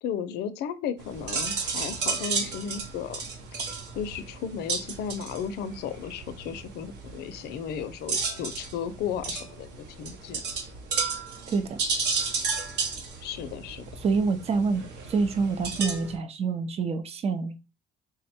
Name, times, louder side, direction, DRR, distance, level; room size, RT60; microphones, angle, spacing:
voice 1, 0.0-3.2 3.7-10.4 13.2-13.9, left 8 dB, 75° left, 12 dB, 0.5 m, -34 dB
sound 1, 1.0-16.2, right 4 dB, 80° right, 0.9 m, -33 dB
voice 2, 11.5-11.8 14.0-14.8 15.1-17.6, right 4 dB, 40° right, 9 dB, 0.6 m, -26 dB
3.6 x 2.1 x 4.2 m, 0.31 s
cardioid pair, 110°, 17 cm